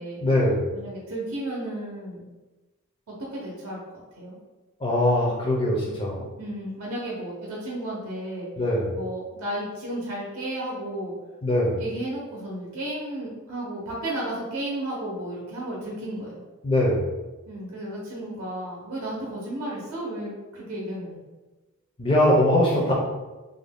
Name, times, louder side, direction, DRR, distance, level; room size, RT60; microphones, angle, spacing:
voice 1, 0.2-0.7 4.8-6.2 8.6-8.9 11.4-11.8 16.6-17.1 22.0-22.9, left 1 dB, 25° left, -3 dB, 0.4 m, -21 dB
voice 2, 0.7-2.3 3.1-3.8 4.2-4.4 6.4-8.5 8.9-11.1 11.8-16.4 17.5-21.2, right 1 dB, 80° right, -4 dB, 0.6 m, -33 dB
2.4 x 2.1 x 3.4 m, 1.2 s
head